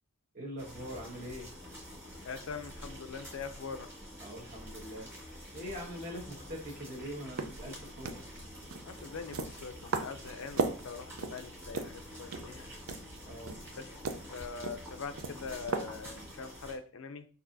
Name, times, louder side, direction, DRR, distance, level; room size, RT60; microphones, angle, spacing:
voice 1, 0.3-1.5 4.2-5.1 5.5-8.2 13.3-13.6, equal, 40° right, 1.5 m, -43 dB
sound 1, 0.6-16.7, equal, 10° right, 1.7 m, -48 dB
voice 2, 2.2-3.9 8.9-12.7 13.8-13.9 14.3-17.3, left 5 dB, 70° left, 0.5 m, -43 dB
sound 2, 7.2-16.4, right 4 dB, 80° right, 0.5 m, -39 dB
6.1 x 2.7 x 2.6 m
head